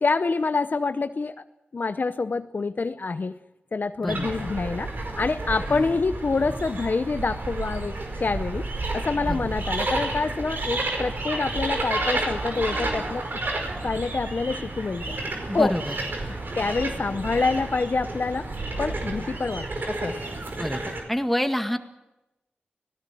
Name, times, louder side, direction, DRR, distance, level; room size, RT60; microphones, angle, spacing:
voice 1, 0.0-1.3 1.7-3.4 3.7-4.9 5.2-8.6 8.9-13.2 13.8-15.2 15.5-15.8 16.6-18.5 18.8-20.2, left 4 dB, 55° left, 11 dB, 0.7 m, -26 dB
sound 1, 4.1-21.0, right 2 dB, 65° right, 4.9 m, -31 dB
voice 2, 15.5-15.9 20.5-20.8 21.1-21.8, equal, 5° left, 7 dB, 2.0 m, -27 dB
25.5 x 17.5 x 7.6 m, 0.96 s
cardioid pair, 55°, 4 cm